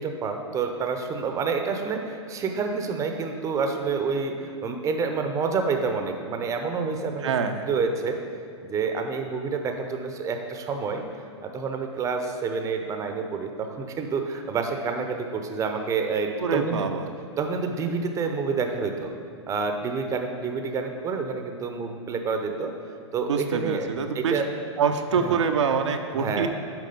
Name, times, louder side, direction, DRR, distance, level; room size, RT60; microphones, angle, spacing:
voice 1, 0.0-7.3 7.6-8.2 8.6-11.0 11.4-16.8 17.4-19.1 19.5-22.7 23.1-23.9 24.1-24.5 25.2-25.4 26.2-26.5, right 5 dB, 20° right, 5 dB, 0.7 m, -28 dB
voice 2, 7.2-7.7 16.4-17.1 23.3-24.4 24.8-26.5, right 6 dB, 80° right, 5 dB, 0.6 m, -25 dB
7.6 x 4.9 x 5.3 m, 2.5 s
hypercardioid pair, 115°, 15 cm